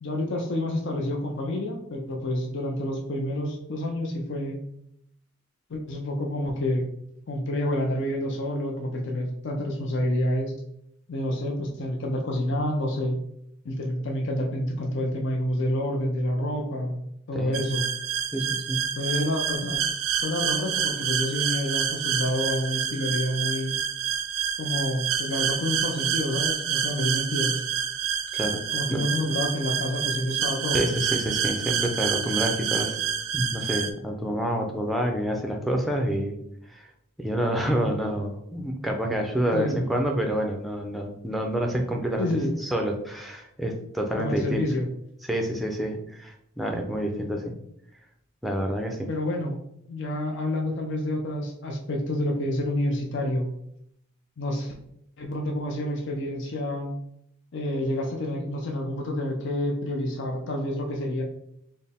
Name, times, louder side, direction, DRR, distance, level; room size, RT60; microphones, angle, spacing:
voice 1, 0.0-4.6 5.7-6.9 7.3-10.5 11.1-13.2 13.6-17.9 19.0-19.8 20.2-23.8 24.6-27.6 28.7-30.9 39.5-39.9 42.2-42.6 44.2-44.9 49.1-49.6 49.9-53.5 54.4-54.7 55.2-56.9 57.5-61.2, left 1 dB, 55° left, 1 dB, 0.5 m, -28 dB
sound 1, 17.5-33.9, right 8 dB, 85° right, 0.4 m, -28 dB
voice 2, 18.3-18.8 28.3-28.6 28.9-29.1 30.7-33.0 33.3-36.4 36.7-36.9 37.2-42.3 42.6-44.6 45.3-47.5 48.4-49.1, equal, ahead, 1 dB, 0.4 m, -28 dB
4.3 x 2.0 x 3.5 m, 0.74 s
head